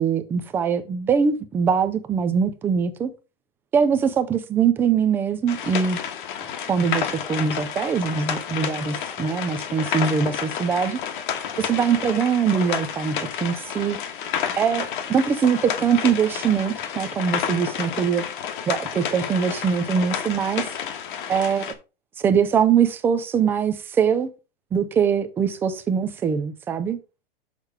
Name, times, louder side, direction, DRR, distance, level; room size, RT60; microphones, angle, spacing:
voice 1, 0.0-3.1 3.7-6.0 6.7-11.0 11.6-14.0 14.6-18.2 18.7-20.7 21.3-21.7 22.2-24.3 24.7-27.0, right 7 dB, 10° right, 0.3 m, -22 dB
sound 1, 5.5-21.7, left 8 dB, 60° left, 1.3 m, -30 dB
6.6 x 4.7 x 4.8 m
hypercardioid pair, 150°, 29 cm